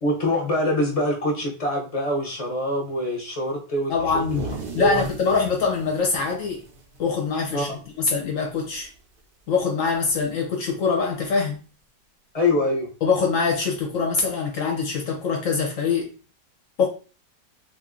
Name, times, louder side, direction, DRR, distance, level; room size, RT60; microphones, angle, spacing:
voice 1, 0.0-4.2 4.8-5.0 7.5-7.8 12.3-12.9, left 1 dB, 35° left, 0.6 m, -24 dB
voice 2, 3.9-6.6 7.0-7.7 8.0-8.9 9.5-11.6 13.0-16.1 16.8-16.9, left 5 dB, 60° left, 0.9 m, -23 dB
sound 1, 3.9-7.7 8.0-8.1 8.5-9.0 10.1-10.2 11.2-11.3, right 2 dB, 80° right, 0.5 m, -36 dB
2.9 x 2.5 x 3.6 m
omnidirectional pair, 1.8 m